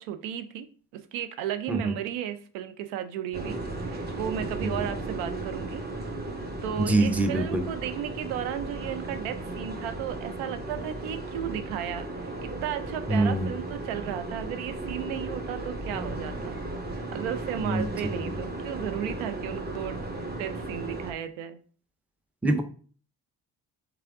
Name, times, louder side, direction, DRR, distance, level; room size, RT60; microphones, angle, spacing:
voice 1, 0.0-5.8 6.6-16.6 17.1-20.1 20.4-21.6, right 10 dB, 80° right, 10 dB, 0.6 m, -34 dB
sound 1, 3.3-21.1, right 2 dB, 20° right, 0.9 m, -35 dB
voice 2, 6.8-7.6 13.1-13.5 17.6-17.9 18.2-18.4 22.4-22.6, right 2 dB, 5° right, 7 dB, 0.5 m, -24 dB
3.5 x 3.3 x 3.5 m, 0.43 s
supercardioid pair, 55°, 48 cm